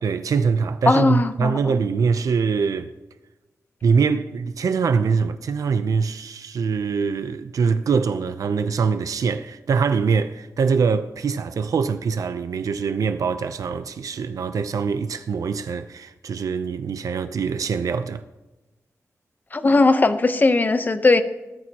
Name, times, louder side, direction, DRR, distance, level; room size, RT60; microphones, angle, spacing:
voice 1, 0.0-2.9 3.8-18.2, right 5 dB, 85° right, 0.6 m, -23 dB
voice 2, 0.9-1.8 19.5-21.2, left 3 dB, 30° left, 0.9 m, -18 dB
20.5 x 14.0 x 2.9 m
wide cardioid pair, 125°, 6 cm